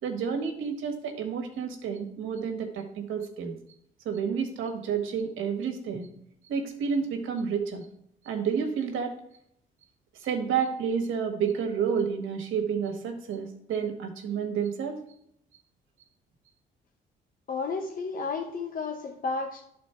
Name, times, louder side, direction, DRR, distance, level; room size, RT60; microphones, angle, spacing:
voice 1, 0.0-3.5 4.0-6.1 6.5-7.9 8.2-9.1 10.2-15.0, right 6 dB, 85° right, 4 dB, 1.6 m, -30 dB
voice 2, 17.5-19.6, left 4 dB, 45° left, 2 dB, 1.0 m, -32 dB
11.0 x 4.2 x 4.4 m, 0.72 s
cardioid pair, 90°, 20 cm